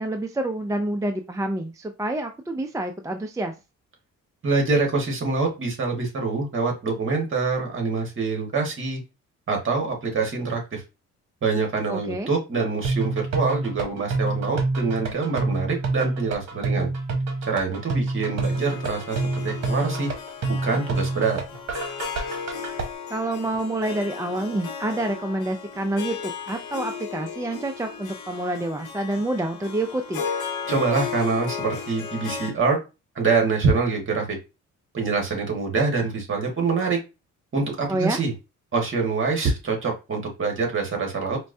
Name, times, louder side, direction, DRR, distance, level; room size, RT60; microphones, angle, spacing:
voice 1, 0.0-3.5 11.9-12.3 23.1-30.2 37.9-38.2, right 1 dB, 10° right, 5 dB, 0.4 m, -28 dB
voice 2, 4.4-9.0 9.5-10.8 11.4-16.9 17.5-20.1 20.6-21.4 30.7-32.8 33.1-34.4 34.9-37.0 37.5-38.3 38.7-41.4, right 4 dB, 40° right, 2 dB, 1.6 m, -25 dB
sound 1, 12.8-22.8, right 3 dB, 60° right, 1.1 m, -27 dB
Harp, 18.4-32.5, left 6 dB, 90° left, 0.9 m, -35 dB
4.4 x 2.1 x 2.6 m, 0.27 s
cardioid pair, 90°, 30 cm